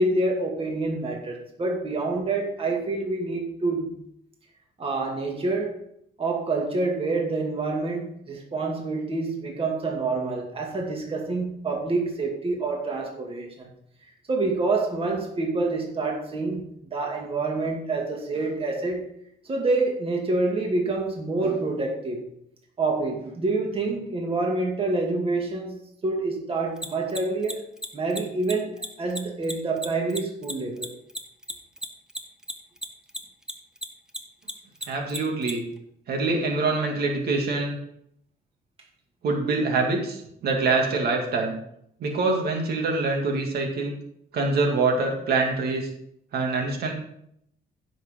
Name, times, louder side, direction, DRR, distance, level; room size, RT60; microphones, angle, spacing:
voice 1, 0.0-3.9 4.8-5.8 6.2-13.7 14.3-16.6 16.9-19.0 19.4-22.2 22.8-25.7 26.0-30.9, right 3 dB, 35° right, 0 dB, 2.3 m, -27 dB
Mechanisms, 26.8-33.5 33.8-35.5, equal, 5° right, 1.2 m, -33 dB
voice 2, 34.9-35.6 36.1-37.8 39.2-41.6 42.0-43.9 44.3-45.9 46.3-46.9, right 3 dB, 70° right, 1 dB, 2.4 m, -25 dB
16.0 x 6.4 x 3.8 m, 0.73 s
cardioid pair, 120°, 17 cm